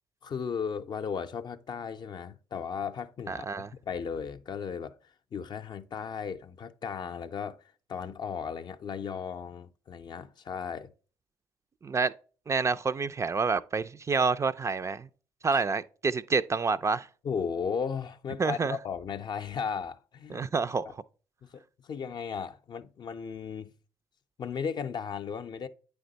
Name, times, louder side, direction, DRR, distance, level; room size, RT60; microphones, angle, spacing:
voice 1, 0.2-4.9 5.3-10.9 17.2-20.5 20.8-20.9 21.4-23.7 24.4-25.7, left 6 dB, 45° left, 0.5 m, -36 dB
voice 2, 3.3-3.7 11.8-12.1 12.5-15.1 15.4-17.1 18.4-18.8 20.3-21.0, right 4 dB, 30° right, 0.3 m, -28 dB
8.9 x 3.5 x 3.9 m
hypercardioid pair, 50°, 10 cm